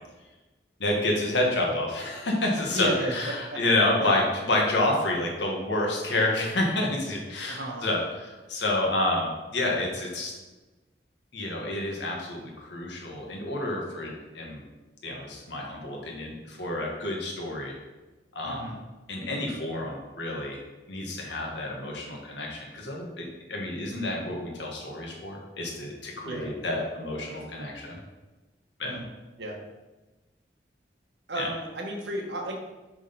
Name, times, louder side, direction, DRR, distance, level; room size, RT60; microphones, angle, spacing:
voice 1, 0.8-10.3 11.3-14.6 15.0-17.7 18.3-18.7 19.1-20.6 20.9-28.0 28.8-29.0 31.4-31.5, left 1 dB, 85° left, -1 dB, 1.6 m, -29 dB
voice 2, 2.7-3.1 3.5-3.6 4.0-4.2 7.5-7.9 18.5-18.8 26.3-26.5 28.8-29.1 29.4-29.6 31.3-32.6, right 1 dB, 75° right, 1 dB, 1.2 m, -32 dB
6.3 x 3.8 x 5.3 m, 1.2 s
head